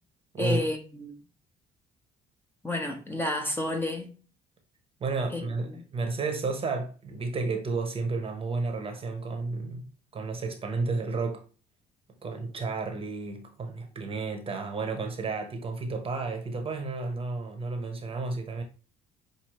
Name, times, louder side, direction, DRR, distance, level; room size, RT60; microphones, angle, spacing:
voice 1, 0.4-1.1 2.6-4.1 5.3-5.8, left 1 dB, 10° left, 0.9 m, -31 dB
voice 2, 5.0-9.9 10.1-11.4 12.2-18.6, right 3 dB, 35° right, 0.9 m, -32 dB
6.1 x 2.7 x 3.0 m
cardioid pair, 110°, 17 cm